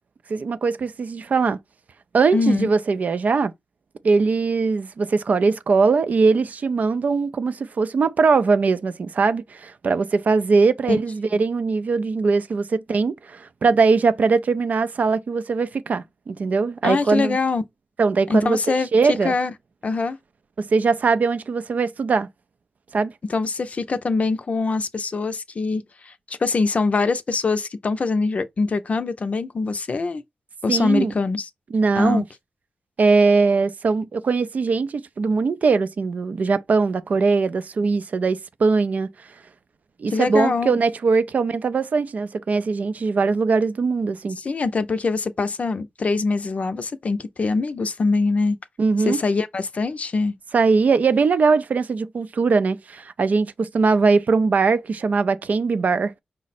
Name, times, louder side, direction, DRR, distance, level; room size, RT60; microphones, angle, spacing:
voice 1, 0.3-1.6 2.1-3.5 4.0-17.4 18.0-18.6 18.9-19.3 20.6-22.3 22.9-23.1 30.7-31.1 31.7-32.2 33.0-39.1 40.0-44.4 48.8-49.2 50.5-56.2, right 4 dB, 65° right, 0.4 m, -21 dB
voice 2, 2.3-2.7 10.9-11.0 11.3-11.4 16.8-17.6 18.3-19.5 19.8-20.2 23.3-30.2 30.6-31.5 32.0-32.2 40.1-40.8 44.4-48.6 49.0-50.3, left 3 dB, 50° left, 0.5 m, -23 dB
5.0 x 2.0 x 4.1 m
cardioid pair, 65°, 3 cm